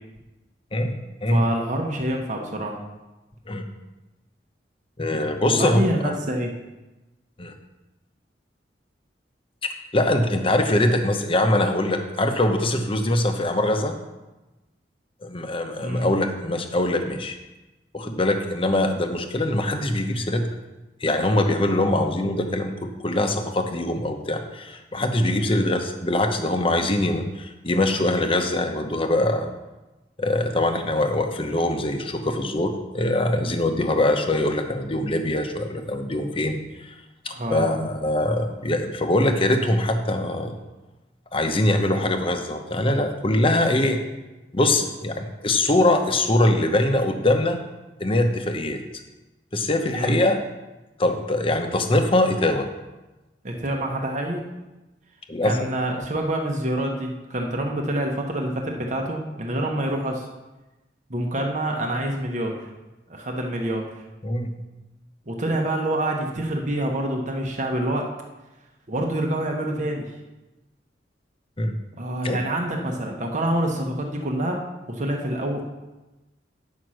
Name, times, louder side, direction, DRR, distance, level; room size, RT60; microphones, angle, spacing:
voice 1, 0.7-1.5 3.5-3.6 5.0-6.1 7.4-7.5 9.9-14.0 15.2-17.4 17.9-20.5 21.0-29.5 30.2-36.9 37.2-40.6 41.3-44.0 44.5-47.6 48.0-48.8 49.5-50.4 51.0-52.7 55.3-55.6 64.2-64.5 71.6-71.7 72.2-72.4, left 1 dB, 30° left, 6 dB, 0.9 m, -23 dB
voice 2, 1.3-2.8 5.5-6.5 15.8-16.1 37.3-37.7 41.9-42.0 49.9-50.1 53.4-54.4 55.4-60.3 61.1-62.7 63.1-64.0 65.3-68.1 68.9-70.1 72.0-74.6 74.9-75.6, right 1 dB, 40° right, 1 dB, 1.1 m, -26 dB
9.4 x 5.7 x 6.4 m, 1.1 s
head